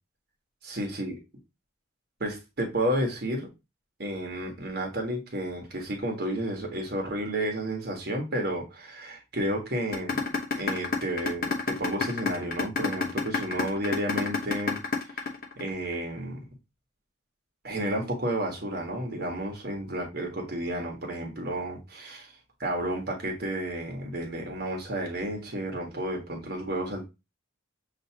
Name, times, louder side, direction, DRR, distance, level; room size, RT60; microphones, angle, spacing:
voice 1, 0.6-1.2 2.2-3.5 4.0-10.2 10.6-15.2 15.6-16.4 17.6-22.3 22.6-27.0, right 1 dB, 50° right, 1 dB, 1.2 m, -31 dB
sound 1, 9.9-15.9, left 4 dB, 45° left, 0.8 m, -28 dB
6.8 x 2.7 x 2.8 m, 0.25 s
head